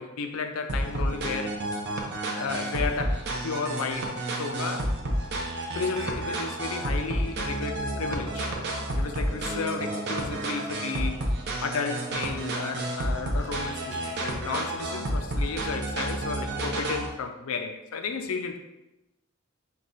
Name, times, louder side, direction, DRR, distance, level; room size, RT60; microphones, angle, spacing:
voice 1, 0.0-1.6 2.4-4.1 4.4-4.9 5.7-8.5 9.0-11.3 11.6-18.6, left 5 dB, 90° left, 6 dB, 0.5 m, -33 dB
sound 1, 0.7-17.1, right 1 dB, 50° right, 0.7 m, -30 dB
4.8 x 2.3 x 3.9 m, 0.96 s
head